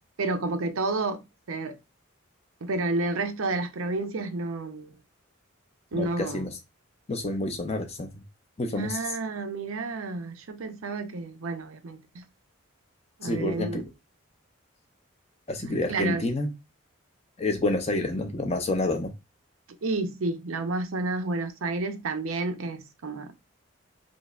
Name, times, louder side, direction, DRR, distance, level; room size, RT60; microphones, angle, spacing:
voice 1, 0.2-1.8 2.6-5.0 5.9-6.5 8.8-12.2 13.2-13.8 15.6-16.2 19.8-23.4, right 3 dB, 75° right, 0.6 m, -30 dB
voice 2, 5.9-6.5 7.1-8.2 8.6-9.1 13.2-13.9 15.5-16.5 17.4-19.1, left 2 dB, 30° left, 0.5 m, -28 dB
5.0 x 2.0 x 2.4 m
head